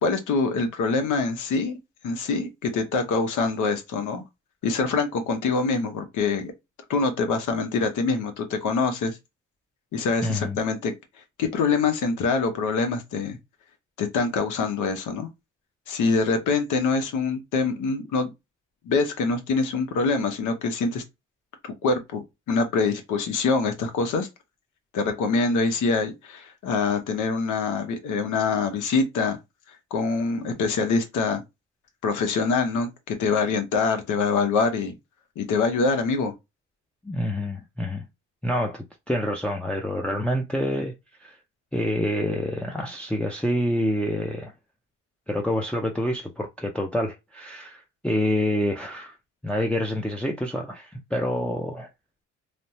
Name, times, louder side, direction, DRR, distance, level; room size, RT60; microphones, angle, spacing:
voice 1, 0.0-1.8 2.0-4.2 4.6-6.5 6.9-9.2 9.9-10.9 11.4-13.4 14.0-15.3 15.9-18.3 18.8-21.0 21.6-22.2 22.5-24.3 24.9-29.4 29.9-31.4 32.0-35.0 35.4-36.3, left 4 dB, 80° left, 0.9 m, -24 dB
voice 2, 10.2-10.6 37.0-38.0 38.4-40.9 41.2-41.3 41.7-44.5 45.3-49.1 49.4-51.9, left 1 dB, 5° left, 0.5 m, -27 dB
3.2 x 2.1 x 2.7 m
cardioid pair, 90°, 30 cm